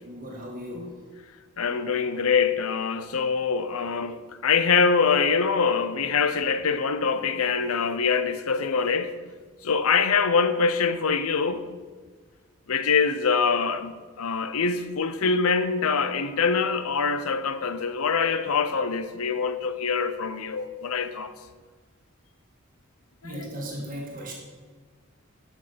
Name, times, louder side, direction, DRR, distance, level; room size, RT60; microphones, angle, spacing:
voice 1, 0.1-1.0 23.2-24.3, equal, 40° right, 1.7 m, -36 dB
voice 2, 1.6-9.2 9.6-11.7 12.7-21.3 23.2-23.3, left 5 dB, 80° left, 0.7 m, -24 dB
12.0 x 6.3 x 5.2 m
head